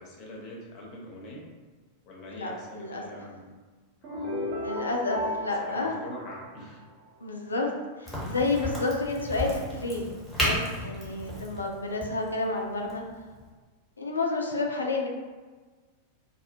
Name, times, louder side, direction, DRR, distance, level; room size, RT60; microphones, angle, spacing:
voice 1, 0.0-1.4 2.0-3.5 4.0-4.6 5.6-6.8, left 1 dB, 40° left, -3 dB, 0.7 m, -43 dB
voice 2, 2.3-3.2 4.6-6.0 7.2-7.7 8.0-10.1 10.4-13.0 14.0-15.1, left 3 dB, 75° left, 1 dB, 0.4 m, -30 dB
sound 1, 4.0-7.1, left 1 dB, 40° right, 0.7 m, -35 dB
Crack, 8.1-13.5, left 1 dB, 5° left, 1.0 m, -34 dB
2.3 x 2.2 x 2.6 m, 1.4 s
figure-of-eight pair, 90°, 0 cm